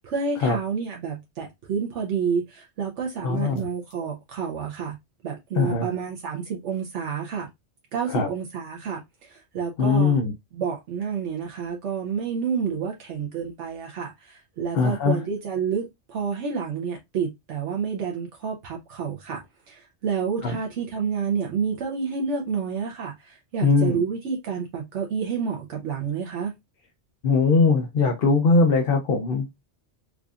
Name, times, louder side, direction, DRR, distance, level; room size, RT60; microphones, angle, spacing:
voice 1, 0.0-5.0 5.2-7.5 7.9-10.2 10.5-26.5, right 6 dB, 85° right, 1.1 m, -29 dB
voice 2, 3.2-3.7 5.6-5.9 8.1-8.3 9.8-10.3 14.7-15.2 20.4-20.6 23.6-24.0 27.2-29.5, left 4 dB, 60° left, 0.8 m, -20 dB
4.7 x 2.5 x 2.3 m
omnidirectional pair, 1.2 m